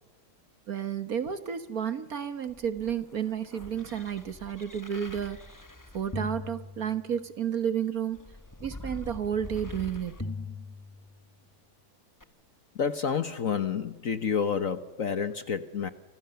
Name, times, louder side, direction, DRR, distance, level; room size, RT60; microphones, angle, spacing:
voice 1, 0.7-5.4 5.9-8.2 8.6-10.2, right 8 dB, 50° right, 1.5 m, -31 dB
sound 1, 2.5-7.4 8.1-11.4 12.2-12.3, left 2 dB, 10° left, 1.0 m, -42 dB
voice 2, 12.7-15.9, left 7 dB, 50° left, 1.3 m, -29 dB
29.5 x 26.5 x 6.9 m
omnidirectional pair, 2.2 m